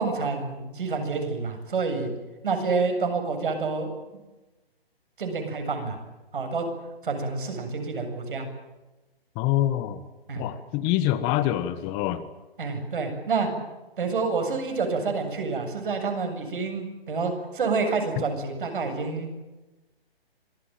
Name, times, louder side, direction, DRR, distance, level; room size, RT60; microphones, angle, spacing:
voice 1, 0.0-2.1 2.4-4.2 5.2-6.0 6.3-6.7 7.0-8.5 10.3-10.4 12.6-13.5 14.0-19.3, right 4 dB, 55° right, 5 dB, 7.7 m, -28 dB
voice 2, 9.4-10.0 10.4-12.2, left 13 dB, 20° left, 13 dB, 1.2 m, -25 dB
26.0 x 21.0 x 9.2 m, 1.1 s
figure-of-eight pair, 140°, 31 cm